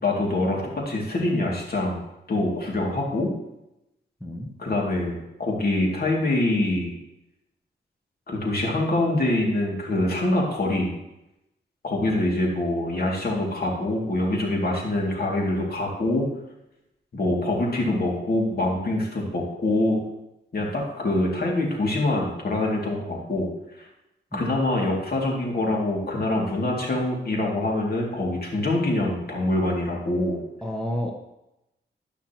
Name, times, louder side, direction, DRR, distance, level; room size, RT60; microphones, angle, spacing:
voice 1, 0.0-2.0 2.3-3.3 4.6-6.9 8.3-10.9 11.8-16.3 17.1-20.0 20.5-23.5 24.3-30.4, left 1 dB, 50° left, -2 dB, 2.5 m, -25 dB
voice 2, 30.6-31.1, equal, 5° left, 1 dB, 1.1 m, -31 dB
12.5 x 5.8 x 3.0 m, 0.90 s
cardioid pair, 65°, 20 cm